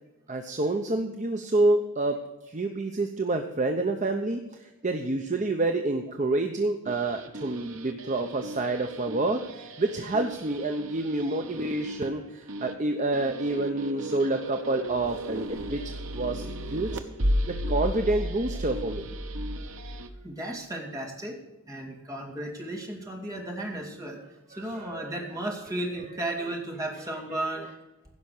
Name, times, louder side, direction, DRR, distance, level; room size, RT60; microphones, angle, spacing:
voice 1, 0.3-2.2 2.5-15.8 16.1-17.0 17.5-19.1 24.5-25.2, right 2 dB, 35° right, 5 dB, 0.8 m, -28 dB
sound 1, 6.9-20.1, equal, 70° right, 1.0 m, -34 dB
voice 2, 20.2-21.4 21.7-24.2 24.5-27.7, right 1 dB, 15° right, -1 dB, 2.6 m, -34 dB
16.0 x 5.8 x 6.6 m, 1.0 s
head